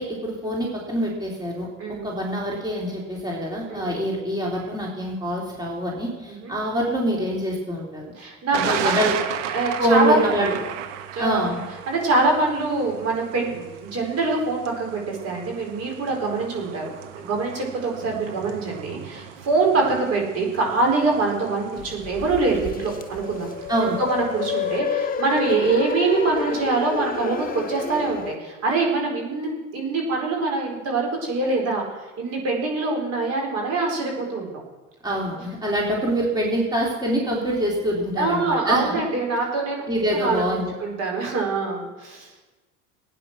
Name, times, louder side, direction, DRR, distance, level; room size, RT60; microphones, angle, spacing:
voice 1, 0.0-8.1 8.5-9.2 9.8-10.6 11.2-11.6 23.7-24.0 35.0-39.0 39.9-40.7, equal, 10° right, -3 dB, 3.5 m, -25 dB
voice 2, 8.2-8.9 9.5-10.5 11.1-11.5 11.9-16.8 17.1-23.5 23.8-31.8 32.2-34.6 38.2-39.9 40.1-42.3, right 3 dB, 40° right, 0 dB, 4.7 m, -24 dB
Thunder, 8.5-24.8, right 10 dB, 65° right, 1.4 m, -36 dB
sound 1, 21.8-28.4, left 6 dB, 20° left, 1.0 m, -29 dB
17.0 x 9.3 x 6.3 m, 1.2 s
figure-of-eight pair, 65°, 38 cm